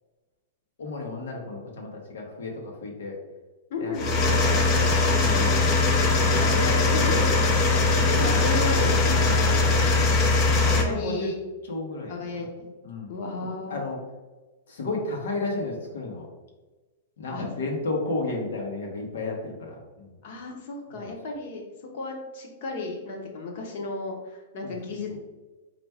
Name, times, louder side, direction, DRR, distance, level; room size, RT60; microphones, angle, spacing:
voice 1, 0.8-3.2 3.8-4.1 4.4-5.7 6.3-7.4 8.2-10.1 10.7-11.3 11.7-12.5 12.8-13.1 13.7-14.0 14.7-16.3 17.2-20.2 20.9-21.1 24.6-24.7 25.1-25.2, left 2 dB, 85° left, -1 dB, 1.0 m, -33 dB
voice 2, 3.7-4.2 6.6-7.2 8.1-9.0 10.7-11.4 12.1-12.7 13.1-13.8 17.3-17.5 20.2-21.7 21.9-25.2, left 3 dB, 45° left, 1 dB, 0.9 m, -34 dB
sound 1, 4.0-10.8, left 3 dB, 25° left, 0.4 m, -21 dB
4.3 x 2.5 x 3.4 m, 1.2 s
supercardioid pair, 170°, 0 cm